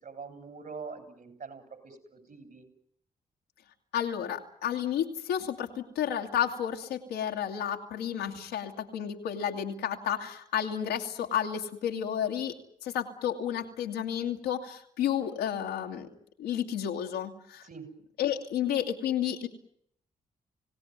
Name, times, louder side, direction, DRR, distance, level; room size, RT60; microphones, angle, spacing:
voice 1, 0.0-2.7 17.6-17.9, right 5 dB, 55° right, 8 dB, 7.4 m, -44 dB
voice 2, 3.9-12.5 12.8-16.1 16.4-17.7 18.2-19.5, left 9 dB, 90° left, 1 dB, 2.3 m, -31 dB
26.0 x 18.0 x 9.5 m, 0.69 s
hypercardioid pair, 40°, 17 cm